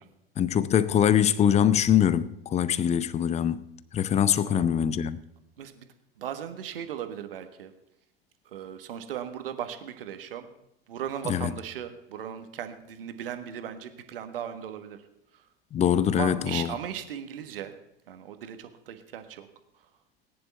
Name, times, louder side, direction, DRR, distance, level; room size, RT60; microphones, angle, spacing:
voice 1, 0.4-3.6 3.9-5.2 11.2-11.5 15.7-16.7, left 9 dB, 20° left, 0.7 m, -23 dB
voice 2, 4.3-4.7 5.6-5.9 6.2-7.7 8.5-10.5 10.9-15.0 16.1-17.8 18.1-19.5, right 9 dB, 65° right, 1.6 m, -37 dB
18.5 x 10.5 x 4.4 m
figure-of-eight pair, 80°, 30 cm